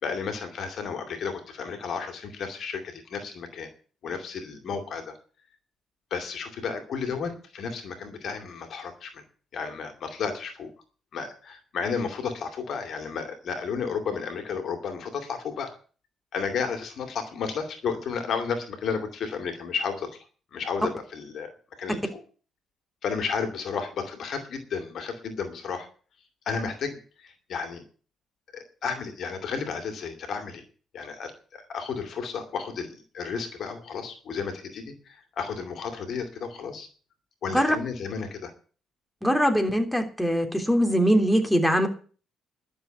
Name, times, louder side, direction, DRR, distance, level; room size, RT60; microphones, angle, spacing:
voice 1, 0.0-3.7 4.0-5.1 6.1-9.2 9.5-10.7 11.1-15.7 16.3-20.3 20.5-21.5 21.8-22.2 23.0-25.9 26.5-27.8 28.5-30.6 30.9-36.9 37.4-38.5, left 5 dB, 60° left, 6 dB, 2.5 m, -32 dB
voice 2, 39.2-41.9, equal, ahead, 4 dB, 3.2 m, -22 dB
11.5 x 7.0 x 9.0 m, 0.39 s
hypercardioid pair, 45°, 0 cm